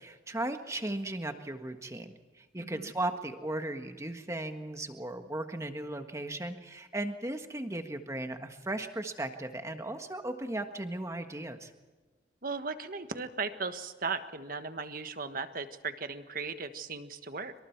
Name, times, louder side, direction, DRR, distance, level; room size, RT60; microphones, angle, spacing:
voice 1, 0.0-11.7, right 1 dB, 15° right, 6 dB, 1.6 m, -36 dB
voice 2, 2.6-2.9 12.4-17.5, right 4 dB, 55° right, 9 dB, 1.5 m, -37 dB
27.0 x 25.5 x 4.7 m, 1.3 s
head